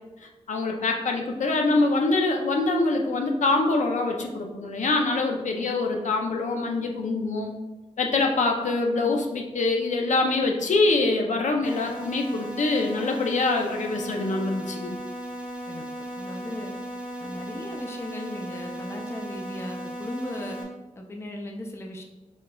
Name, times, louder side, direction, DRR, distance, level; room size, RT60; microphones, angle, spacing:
voice 1, 0.5-7.5 8.0-15.0, left 3 dB, 80° left, 2 dB, 0.5 m, -24 dB
sound 1, 11.6-20.6, right 1 dB, 10° right, 0.8 m, -36 dB
voice 2, 16.2-16.7 17.2-20.6 21.0-22.0, left 1 dB, 20° left, 2 dB, 0.4 m, -37 dB
5.0 x 3.7 x 2.2 m, 1.1 s
wide cardioid pair, 150°, 12 cm